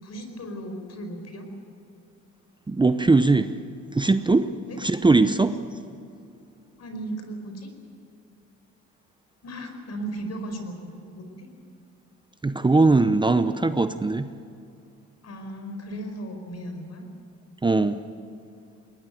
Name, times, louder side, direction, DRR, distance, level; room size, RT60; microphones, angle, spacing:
voice 1, 0.0-1.5 4.7-4.8 6.8-7.7 9.4-11.5 15.2-17.1, right 1 dB, 55° left, 5 dB, 5.0 m, -36 dB
voice 2, 2.7-3.5 3.9-4.5 4.8-5.6 12.4-14.3 17.6-18.0, right 3 dB, 15° right, 11 dB, 0.7 m, -20 dB
21.5 x 19.5 x 9.2 m, 2.5 s
cardioid pair, 90°, 30 cm